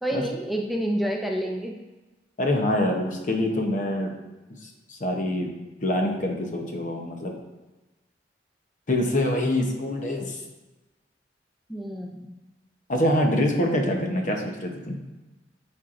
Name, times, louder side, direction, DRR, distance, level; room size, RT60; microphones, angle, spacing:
voice 1, 0.0-1.7 11.7-12.4, right 1 dB, ahead, 0 dB, 0.4 m, -28 dB
voice 2, 2.4-4.1 4.6-5.5 5.8-7.3 8.9-10.4 12.9-15.0, left 1 dB, 45° left, 2 dB, 0.8 m, -25 dB
8.8 x 4.4 x 2.5 m, 1.1 s
head